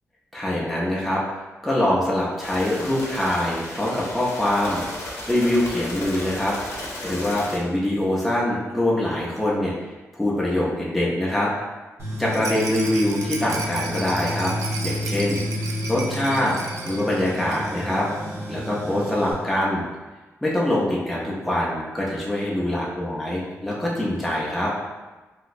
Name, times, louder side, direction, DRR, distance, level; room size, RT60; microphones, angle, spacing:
voice 1, 0.3-1.2 1.6-4.8 5.2-6.8 7.0-9.7 10.1-11.5 12.2-14.5 14.8-15.4 15.9-16.5 16.8-18.1 18.5-19.8 20.4-24.7, left 1 dB, ahead, -6 dB, 0.5 m, -24 dB
sound 1, 2.4-7.6, left 1 dB, 60° left, 0.7 m, -35 dB
Tools, 12.0-19.3, left 1 dB, 65° right, 1.1 m, -31 dB
Rattle, 12.3-18.0 18.3-18.4 18.6-18.7, right 3 dB, 90° right, 0.4 m, -35 dB
3.0 x 2.7 x 2.5 m, 1.2 s
wide cardioid pair, 170°, 5 cm